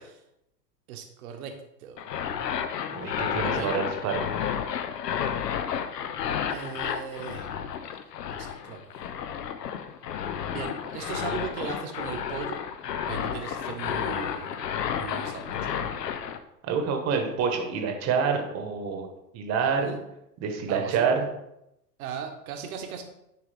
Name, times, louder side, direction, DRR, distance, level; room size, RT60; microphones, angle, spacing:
voice 1, 0.9-1.5 1.8-2.5 3.4-3.7 6.5-7.5 8.3-8.9 10.5-12.6 13.1-14.6 14.9-15.9 19.8-20.0 20.7-21.1 22.0-23.0, right 7 dB, 60° right, 5 dB, 1.3 m, -38 dB
sound 1, 2.0-16.4, left 8 dB, 75° left, 0.7 m, -31 dB
voice 2, 2.9-4.3 16.6-19.1 19.3-19.9 20.4-21.3, right 6 dB, 30° right, 4 dB, 1.2 m, -27 dB
10.0 x 3.5 x 3.3 m, 0.83 s
hypercardioid pair, 100°, 49 cm